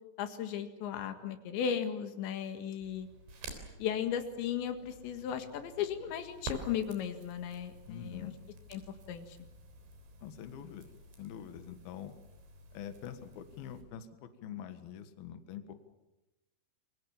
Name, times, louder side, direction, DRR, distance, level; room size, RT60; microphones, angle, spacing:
voice 1, 0.2-3.1 3.8-8.3 8.7-9.4, left 8 dB, 90° left, 8 dB, 4.1 m, -36 dB
Crackle, 2.8-13.8, right 3 dB, 80° right, 5.8 m, -50 dB
voice 2, 7.9-8.3 10.2-10.9 11.2-12.1 12.7-15.7, left 9 dB, 65° left, 9 dB, 3.2 m, -45 dB
28.0 x 23.5 x 7.3 m, 0.98 s
omnidirectional pair, 5.0 m